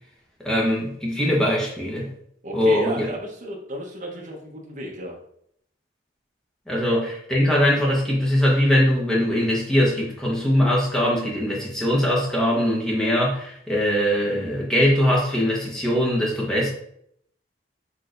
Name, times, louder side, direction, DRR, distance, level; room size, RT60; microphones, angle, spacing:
voice 1, 0.4-2.1 2.5-3.1 6.7-16.7, equal, 5° left, -4 dB, 1.2 m, -21 dB
voice 2, 2.4-5.2, right 1 dB, 45° right, 0 dB, 1.0 m, -34 dB
6.3 x 3.3 x 2.6 m, 0.70 s
head